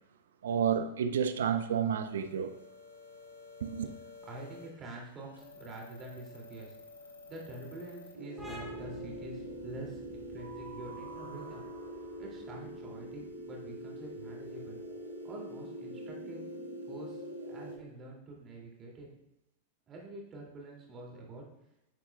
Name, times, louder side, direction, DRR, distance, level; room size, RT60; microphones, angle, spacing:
voice 1, 0.4-2.5 3.6-3.9, right 8 dB, 65° right, 0.6 m, -30 dB
sound 1, 2.0-8.1, left 4 dB, 75° left, 1.4 m, -52 dB
voice 2, 4.2-6.7 7.3-11.6 12.2-14.8 15.2-16.5 16.9-19.1 19.9-21.5, right 2 dB, 25° right, 2.3 m, -47 dB
sound 2, 8.1-17.8, right 1 dB, 80° right, 1.9 m, -43 dB
sound 3, 8.4-15.7, equal, ahead, 1.9 m, -53 dB
10.0 x 7.5 x 2.2 m
figure-of-eight pair, 90°, 0 cm